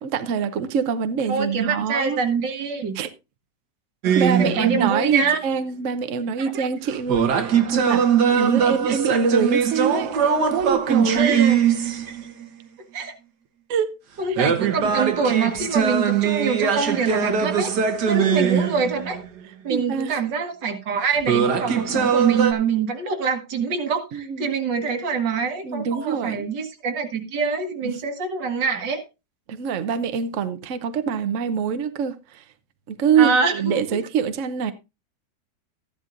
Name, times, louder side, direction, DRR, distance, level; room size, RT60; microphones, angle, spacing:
voice 1, 0.0-2.2 2.9-3.1 4.1-11.4 13.7-14.0 19.7-20.2 24.1-24.5 25.6-26.5 27.8-28.0 29.5-32.4 32.9-34.7, right 6 dB, 55° right, 1.0 m, -25 dB
voice 2, 1.3-2.9 4.4-5.4 6.4-6.6 8.3-8.4 8.9-9.0 11.2-11.6 12.1-12.2 12.9-13.1 14.2-17.7 18.1-19.2 19.6-29.0 33.2-33.8, right 5 dB, 90° right, 2.1 m, -25 dB
sound 1, 4.0-4.9 6.9-12.4 14.4-19.3 21.2-22.5, right 7 dB, 70° right, 1.7 m, -21 dB
13.5 x 11.0 x 2.5 m
omnidirectional pair, 1.9 m